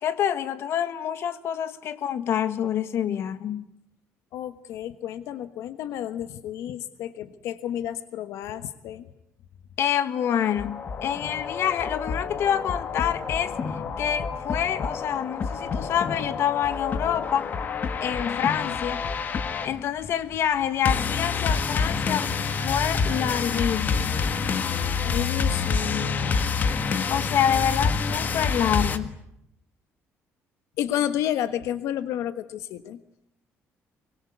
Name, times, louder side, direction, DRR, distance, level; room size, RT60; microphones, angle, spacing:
voice 1, 0.0-3.7 9.8-13.6 14.0-17.5 18.0-19.0 19.6-24.2 27.1-29.2, left 9 dB, 55° left, 1.6 m, -27 dB
voice 2, 4.3-9.1 25.0-26.4 30.8-33.0, left 11 dB, 80° left, 1.3 m, -31 dB
sound 1, 10.2-29.0, left 5 dB, 35° left, 1.7 m, -28 dB
24.5 x 22.5 x 9.4 m
cardioid pair, 160°, 5 cm